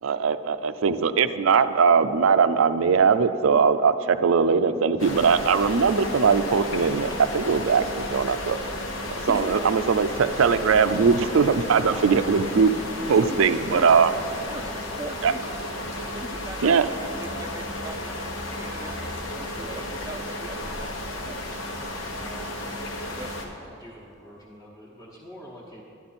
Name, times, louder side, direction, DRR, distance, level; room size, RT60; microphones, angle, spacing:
voice 1, 0.0-8.6 9.3-12.7 13.1-14.1 15.2-15.3 16.6-16.9, right 5 dB, 80° right, 12 dB, 0.4 m, -20 dB
sound 1, 5.0-23.5, left 1 dB, 80° left, 1.3 m, -33 dB
voice 2, 9.3-9.7 13.0-13.9 14.4-15.6 16.0-18.1 18.4-19.1 19.3-21.4 23.1-23.4, right 2 dB, 15° right, 7 dB, 0.4 m, -39 dB
voice 3, 22.2-22.7 23.6-25.8, equal, 15° left, -7 dB, 1.0 m, -46 dB
12.0 x 10.5 x 4.2 m, 3.0 s
head